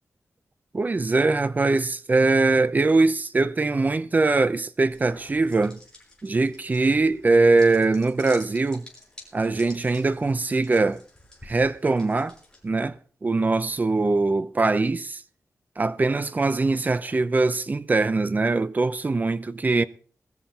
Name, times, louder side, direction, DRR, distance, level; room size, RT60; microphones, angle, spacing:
voice 1, 0.7-5.8 6.2-8.8 9.3-11.0 11.4-12.3 12.6-12.9 13.2-15.2 15.8-19.8, right 3 dB, 30° right, 0.6 m, -22 dB
sound 1, 4.8-12.9, left 2 dB, 15° left, 5.6 m, -50 dB
21.0 x 13.5 x 2.9 m
wide cardioid pair, 135°, 6 cm